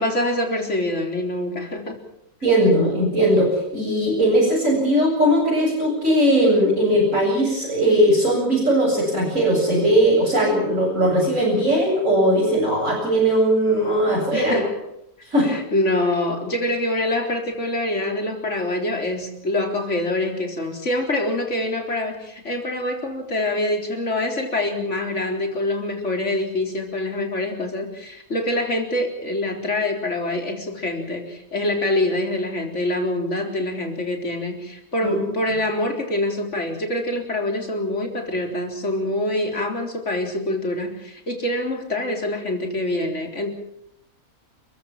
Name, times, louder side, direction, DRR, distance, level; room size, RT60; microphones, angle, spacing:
voice 1, 0.0-2.0 14.3-14.8 15.4-43.5, left 1 dB, 55° left, 3 dB, 4.4 m, -25 dB
voice 2, 2.4-14.6 15.3-15.5 35.0-35.2, right 1 dB, 60° right, -6 dB, 8.5 m, -19 dB
30.0 x 15.0 x 7.5 m, 0.78 s
omnidirectional pair, 1.5 m